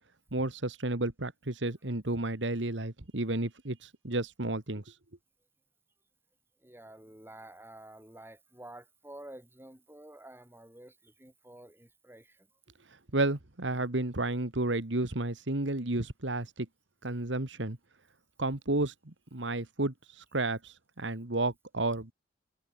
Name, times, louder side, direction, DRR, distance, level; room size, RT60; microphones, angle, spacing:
voice 1, 0.3-4.9 13.1-16.7 17.0-17.8 18.4-22.1, right 2 dB, 75° right, 2.1 m, -32 dB
voice 2, 6.6-12.5, right 1 dB, 10° right, 6.9 m, -50 dB
head